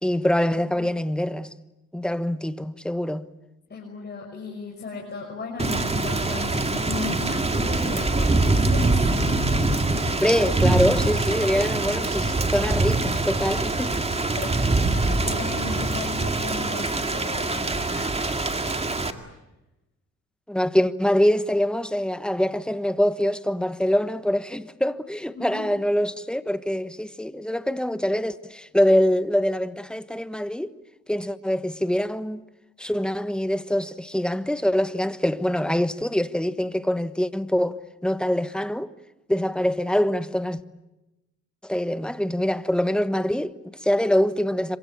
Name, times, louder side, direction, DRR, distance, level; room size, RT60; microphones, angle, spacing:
voice 1, 0.0-1.5 1.9-3.3 10.2-14.0 20.5-30.7 31.1-32.4 32.8-37.8 38.0-38.9 39.3-40.6 41.6-44.8, equal, 5° left, 1.2 m, -24 dB
voice 2, 3.7-10.2 14.2-18.7 25.3-25.7, left 3 dB, 35° left, 5.9 m, -36 dB
Thunder / Rain, 5.6-19.1, right 2 dB, 20° right, 2.2 m, -24 dB
26.5 x 24.5 x 8.6 m
cardioid pair, 90°, 30 cm